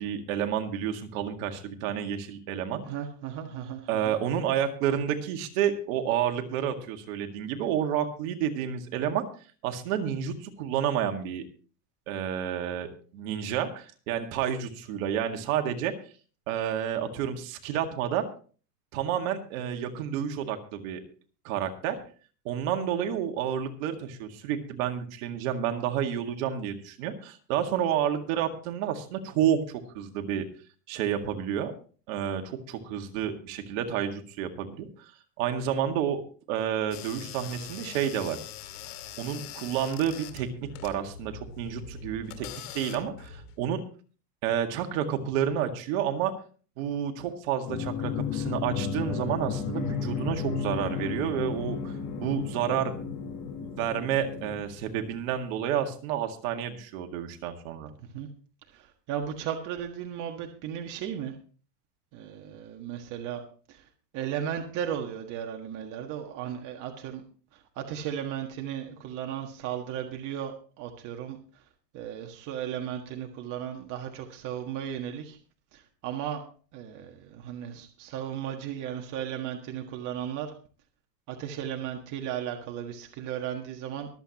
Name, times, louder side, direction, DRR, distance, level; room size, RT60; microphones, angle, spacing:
voice 1, 0.0-2.8 3.9-9.3 9.6-11.4 12.1-15.9 16.5-18.3 18.9-21.0 21.4-22.0 22.5-30.5 30.9-31.7 32.1-35.1 35.4-36.2 36.5-38.4 39.2-40.5 40.8-42.5 42.7-43.8 44.4-46.3 46.8-52.9 53.6-57.9, right 9 dB, 55° right, 5 dB, 2.0 m, -30 dB
voice 2, 2.8-4.1 58.1-58.3 58.7-61.3 62.1-63.4 63.7-63.9 64.1-67.2 67.5-71.6 71.9-75.4 75.7-76.4 76.7-80.5 81.3-84.1, right 9 dB, 40° right, 3 dB, 1.6 m, -35 dB
sound 1, 36.9-43.6, left 8 dB, 65° left, 2.3 m, -43 dB
sound 2, 47.6-55.2, left 6 dB, 40° left, 5.5 m, -33 dB
24.0 x 8.1 x 3.0 m, 0.40 s
supercardioid pair, 140°, 49 cm